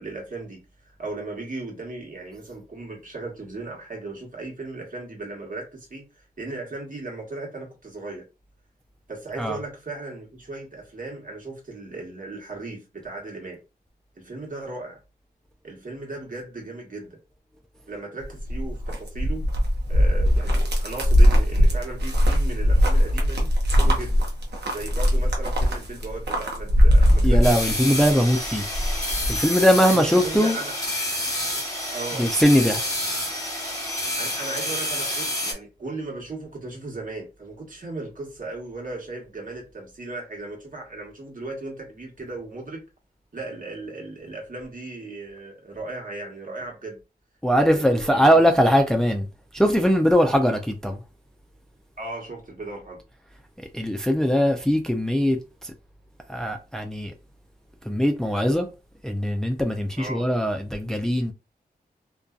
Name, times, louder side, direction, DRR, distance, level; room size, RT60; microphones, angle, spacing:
voice 1, 0.0-8.3 9.1-13.6 14.2-15.0 15.6-17.2 17.9-19.4 19.9-24.3 24.6-27.4 29.9-30.7 31.9-32.3 34.2-42.8 43.3-47.0 47.5-48.5 52.0-53.0 60.0-60.3, right 2 dB, 55° right, 1.2 m, -36 dB
sound 1, 18.2-28.1 28.4-29.4, equal, 85° right, 0.7 m, -20 dB
voice 2, 27.2-28.6 29.3-30.6 32.2-32.8 47.4-49.3 49.5-51.0 53.7-55.7 56.3-57.1 57.9-58.7 59.0-61.3, equal, 5° left, 0.4 m, -21 dB
sound 2, 27.4-35.5, left 1 dB, 20° left, 1.2 m, -29 dB
2.6 x 2.3 x 2.3 m
cardioid pair, 45°, 17 cm